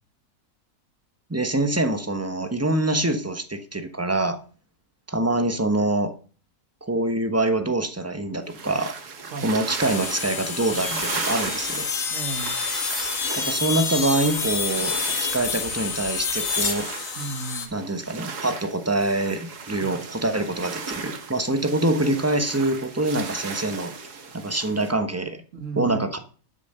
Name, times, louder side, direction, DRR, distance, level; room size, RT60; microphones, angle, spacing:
voice 1, 1.3-4.4 5.1-6.1 6.8-8.9 9.4-11.9 13.5-16.9 17.7-23.9 24.3-25.4 25.8-26.2, right 2 dB, 10° right, 0.9 m, -25 dB
sound 1, 8.5-24.9, right 5 dB, 90° right, 2.1 m, -36 dB
sound 2, 9.8-17.7, left 5 dB, 60° left, 1.9 m, -28 dB
voice 2, 12.1-12.6 17.2-17.7 19.7-19.9 25.5-26.1, right 3 dB, 55° right, 1.7 m, -34 dB
12.0 x 7.2 x 6.7 m
omnidirectional pair, 1.6 m